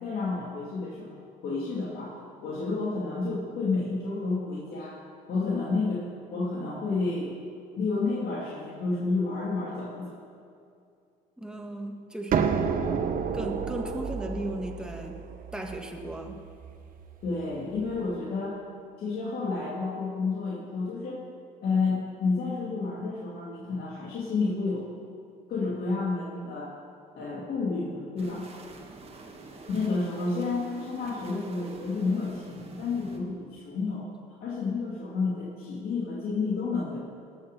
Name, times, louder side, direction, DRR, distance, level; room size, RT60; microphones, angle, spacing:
voice 1, 0.0-2.1 2.4-5.0 5.3-6.0 6.3-7.3 7.8-10.1 17.2-18.6 19.0-21.2 21.6-24.9 25.5-26.7 27.2-28.5 29.7-34.1 34.4-37.0, left 3 dB, 60° left, -6 dB, 2.6 m, -30 dB
voice 2, 11.4-12.7 13.3-15.2 15.5-16.4, right 1 dB, 5° right, 3 dB, 1.5 m, -36 dB
sound 1, 12.3-17.9, right 6 dB, 55° right, 1.1 m, -31 dB
sound 2, 28.2-33.2, right 3 dB, 35° right, 1.9 m, -47 dB
19.0 x 7.0 x 6.8 m, 2.5 s
cardioid pair, 110°, 17 cm